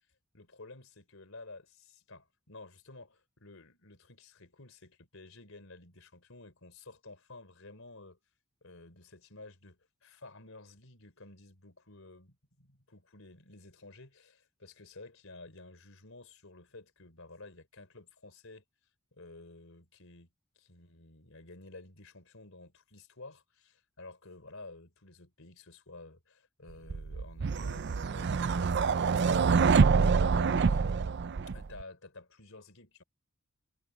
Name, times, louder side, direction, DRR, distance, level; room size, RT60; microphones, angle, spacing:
voice 1, 0.3-8.2 8.6-18.6 19.1-20.3 20.6-28.8 29.2-30.9 31.5-33.0, left 2 dB, 65° left, 4.0 m, -52 dB
sound 1, 26.9-31.8, right 5 dB, 50° right, 0.4 m, -26 dB
head